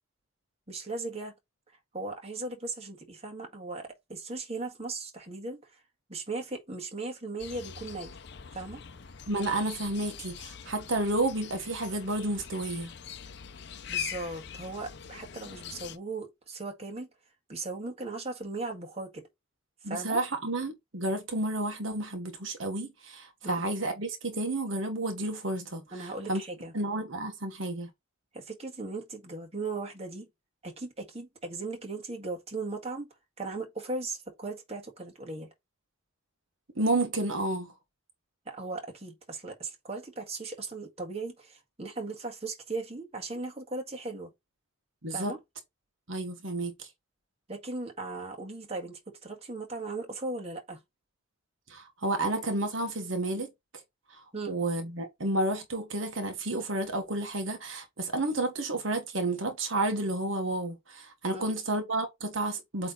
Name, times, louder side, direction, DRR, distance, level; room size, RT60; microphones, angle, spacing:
voice 1, 0.7-1.3 1.9-5.8 6.1-8.1 8.5-8.8 13.9-17.1 17.5-19.3 19.8-20.2 23.4-23.6 25.9-26.7 28.3-30.3 30.6-33.1 33.4-35.5 38.5-44.3 45.1-45.4 47.5-50.8 54.3-54.6 61.3-61.5, right 3 dB, 30° right, 1.7 m, -37 dB
sound 1, 7.4-16.0, left 9 dB, 55° left, 0.6 m, -43 dB
voice 2, 9.3-12.9 19.8-26.4 26.7-27.9 36.7-37.7 45.0-45.3 46.1-46.9 51.7-53.5 54.1-54.2 54.5-62.9, right 2 dB, 70° right, 1.4 m, -31 dB
8.4 x 3.4 x 4.0 m
head